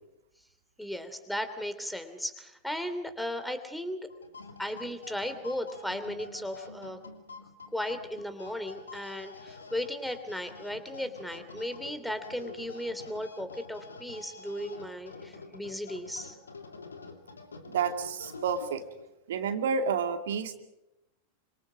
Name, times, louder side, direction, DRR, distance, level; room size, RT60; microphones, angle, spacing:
voice 1, 0.8-4.0 4.6-7.0 7.7-16.3, left 1 dB, ahead, 10 dB, 3.1 m, -36 dB
sound 1, 4.1-19.1, left 3 dB, 75° left, 2.8 m, -47 dB
voice 2, 17.7-18.8 19.3-20.6, right 6 dB, 60° right, 7 dB, 2.4 m, -30 dB
27.0 x 26.0 x 5.1 m, 0.91 s
figure-of-eight pair, 90°, 0 cm